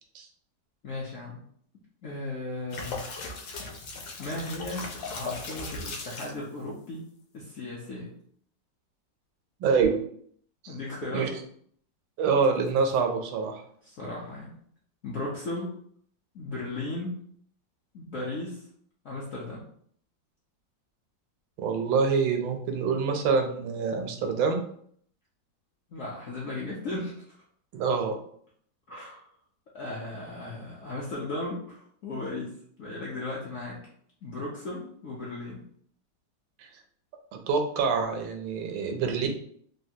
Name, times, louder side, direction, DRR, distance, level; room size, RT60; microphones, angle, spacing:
voice 1, 0.8-1.4 2.0-3.1 4.2-7.1 7.3-8.1 10.7-11.4 13.8-14.5 15.0-15.8 16.3-17.3 17.9-18.6 19.0-19.7 25.9-27.4 28.9-29.2 29.7-32.5 32.8-33.8 34.2-35.7, left 2 dB, 70° left, -5 dB, 0.7 m, -36 dB
sound 1, 2.7-6.4 12.4-13.0, left 3 dB, 85° left, 1.3 m, -38 dB
voice 2, 9.6-10.0 11.1-11.3 12.2-13.6 21.6-24.6 27.7-28.1 36.6-36.7 37.3-39.3, right 5 dB, 85° right, 4 dB, 1.3 m, -26 dB
3.3 x 2.2 x 2.7 m, 0.62 s
omnidirectional pair, 2.0 m